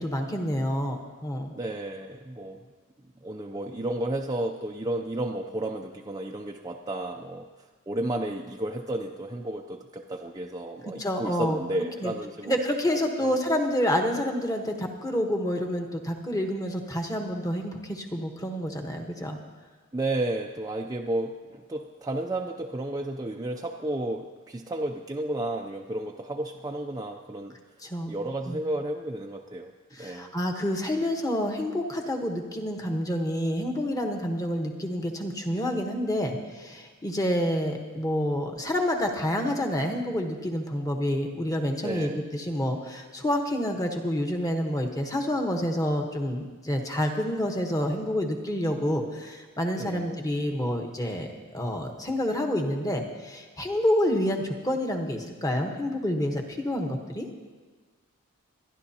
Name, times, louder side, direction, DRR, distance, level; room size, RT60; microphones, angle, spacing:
voice 1, 0.0-1.5 11.0-11.6 12.0-12.1 12.4-19.4 27.8-28.1 28.5-28.6 29.9-57.3, equal, 15° left, 3 dB, 1.1 m, -28 dB
voice 2, 1.5-2.6 3.2-7.5 7.9-12.6 13.2-13.3 19.9-27.6 28.1-29.7 30.0-30.3 41.8-42.2 49.7-50.2, right 1 dB, 15° right, 1 dB, 0.5 m, -32 dB
27.0 x 11.0 x 2.9 m, 1.4 s
head